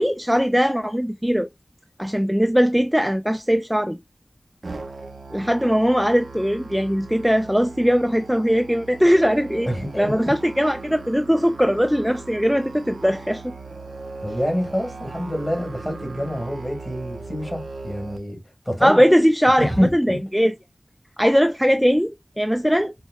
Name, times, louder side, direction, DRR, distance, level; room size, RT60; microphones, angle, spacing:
voice 1, 0.0-1.5 2.0-4.0 5.3-9.7 10.0-13.4 18.8-20.5 21.2-22.9, equal, ahead, 0.3 m, -20 dB
Musical instrument, 4.6-18.2, right 3 dB, 85° right, 0.5 m, -38 dB
voice 2, 9.7-10.3 14.2-18.4 18.7-19.0 19.6-20.2, equal, 25° left, 1.9 m, -26 dB
5.4 x 2.1 x 2.3 m
wide cardioid pair, 45°, 0 cm